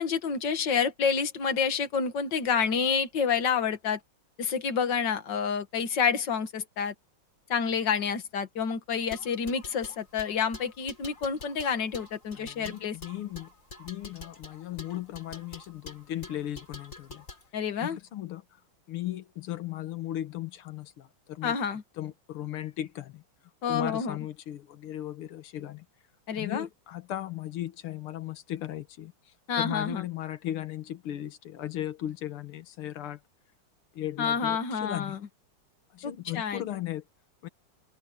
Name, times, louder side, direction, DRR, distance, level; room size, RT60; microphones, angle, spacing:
voice 1, 0.0-4.0 4.4-6.9 7.5-13.0 17.5-18.0 21.4-21.8 23.6-24.2 26.3-26.7 29.5-30.0 34.2-35.2 36.0-36.6, left 6 dB, 55° left, 2.3 m, -28 dB
sound 1, 9.0-17.5, left 3 dB, 35° left, 4.5 m, -46 dB
voice 2, 12.3-13.5 13.8-17.3 17.8-18.4 18.9-21.6 22.0-23.2 23.7-25.9 26.3-33.2 33.9-35.2 35.9-37.0 37.4-37.5, left 13 dB, 75° left, 2.0 m, -37 dB
omnidirectional pair, 2.4 m